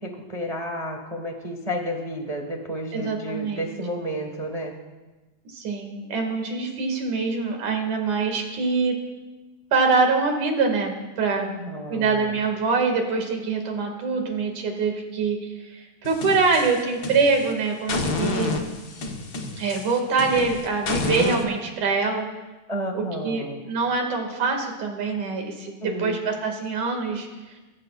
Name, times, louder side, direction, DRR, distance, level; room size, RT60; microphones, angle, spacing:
voice 1, 0.0-4.7 11.3-12.4 22.7-23.6 25.8-26.2, equal, 40° right, 2 dB, 0.5 m, -31 dB
voice 2, 2.9-3.7 5.5-9.0 9.7-11.5 11.9-15.4 15.7-18.6 19.6-22.2 22.9-27.3, right 4 dB, 70° right, 2 dB, 3.6 m, -24 dB
sound 1, 16.0-17.5 17.9-21.4, left 3 dB, 60° left, 1.0 m, -29 dB
23.0 x 16.0 x 2.5 m, 1.2 s
omnidirectional pair, 3.6 m